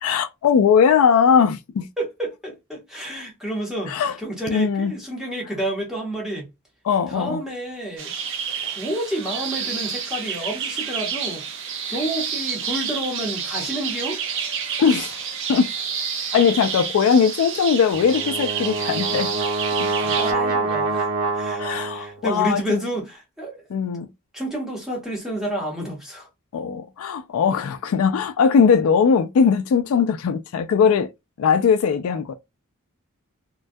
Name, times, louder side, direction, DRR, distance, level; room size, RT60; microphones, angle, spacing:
voice 1, 0.0-1.9 3.9-4.2 4.5-4.9 6.9-7.4 14.8-15.2 15.5-15.7 16.3-19.3 19.8-19.9 21.6-22.8 23.7-24.1 26.5-31.1 31.4-32.3, left 6 dB, 65° left, 0.3 m, -19 dB
voice 2, 2.0-6.5 7.1-8.1 8.6-11.4 11.9-14.2 19.9-23.6 24.3-26.3, right 1 dB, ahead, 0.8 m, -30 dB
sound 1, 8.0-20.3, right 7 dB, 60° right, 0.5 m, -29 dB
Brass instrument, 17.9-22.2, right 3 dB, 85° right, 0.9 m, -25 dB
2.2 x 2.1 x 2.6 m
head